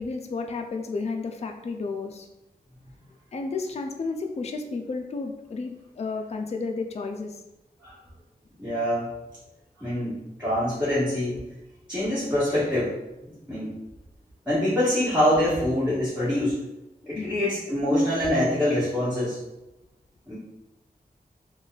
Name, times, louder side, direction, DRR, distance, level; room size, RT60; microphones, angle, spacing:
voice 1, 0.0-2.3 3.3-7.4 17.1-17.5, left 4 dB, 40° left, 4 dB, 0.4 m, -32 dB
voice 2, 8.6-9.1 9.8-11.4 11.9-12.9 13.2-13.7 14.4-16.6 17.0-19.4 20.3-20.4, left 1 dB, 5° right, -12 dB, 1.3 m, -25 dB
3.9 x 2.3 x 2.3 m, 0.96 s
wide cardioid pair, 65°, 16 cm